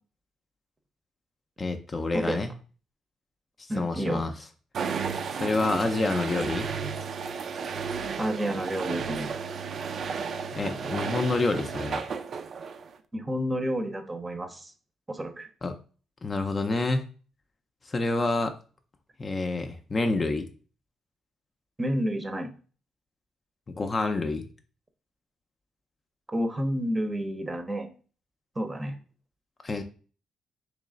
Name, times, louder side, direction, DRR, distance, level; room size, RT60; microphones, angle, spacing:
voice 1, 1.6-2.5 3.8-4.3 5.3-6.7 10.5-12.0 15.6-15.7 16.2-17.1 17.9-18.5 19.2-20.5 23.7-24.5 29.6-29.8, left 3 dB, 30° left, 6 dB, 0.5 m, -28 dB
voice 2, 3.7-4.2 8.2-9.3 13.1-14.7 15.1-15.5 21.8-22.5 26.3-27.9 28.6-29.0, equal, 20° right, 6 dB, 0.7 m, -30 dB
sound 1, 4.7-13.0, right 6 dB, 55° right, 0.4 m, -33 dB
3.2 x 3.0 x 3.8 m, 0.38 s
cardioid pair, 90°, 0 cm